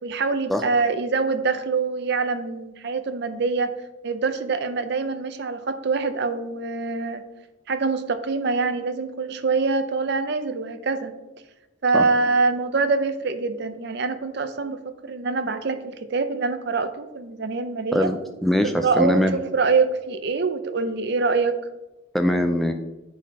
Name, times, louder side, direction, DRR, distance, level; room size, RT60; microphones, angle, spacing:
voice 1, 0.0-3.7 4.0-7.2 7.7-11.1 11.8-18.1 18.8-21.5, right 4 dB, 55° right, 9 dB, 0.6 m, -24 dB
voice 2, 17.9-19.4 22.1-22.7, left 1 dB, ahead, 5 dB, 0.3 m, -22 dB
10.0 x 4.2 x 4.1 m, 1.1 s
head